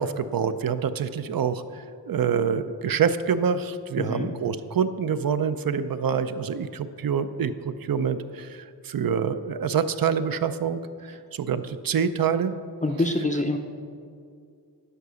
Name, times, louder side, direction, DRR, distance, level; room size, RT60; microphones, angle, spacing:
voice 1, 0.0-12.5 13.0-13.1, right 7 dB, 55° right, 12 dB, 0.5 m, -26 dB
voice 2, 4.0-4.3 12.8-13.6, left 2 dB, 20° left, 4 dB, 0.5 m, -25 dB
11.0 x 4.9 x 6.8 m, 2.3 s
wide cardioid pair, 125°, 42 cm